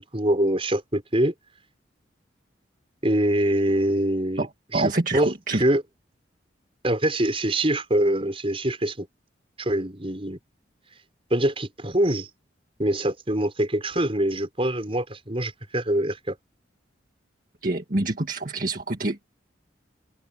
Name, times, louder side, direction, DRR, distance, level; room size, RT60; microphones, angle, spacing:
voice 1, 0.0-1.3 3.0-5.8 6.8-9.1 9.6-10.4 11.3-12.3 12.8-16.4, right 1 dB, 30° right, 5.5 m, -24 dB
voice 2, 4.7-5.6 17.6-19.2, right 2 dB, 45° right, 1.9 m, -26 dB
head